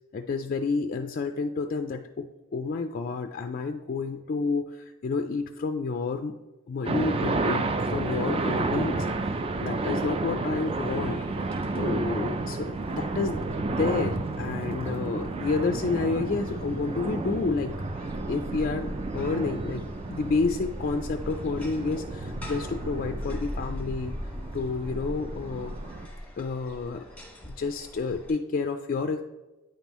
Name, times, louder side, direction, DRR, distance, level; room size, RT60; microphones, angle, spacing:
voice 1, 0.1-2.3 2.5-6.3 6.7-9.0 9.6-11.2 11.7-17.7 18.3-19.8 20.1-24.2 24.5-25.7 26.4-27.0 27.4-29.2, left 4 dB, 40° left, 6 dB, 0.3 m, -30 dB
sound 1, 6.8-26.1, right 3 dB, 25° right, 0.4 m, -31 dB
sound 2, 8.5-28.3, equal, 5° left, 1.3 m, -42 dB
8.9 x 5.3 x 3.0 m, 1.1 s
head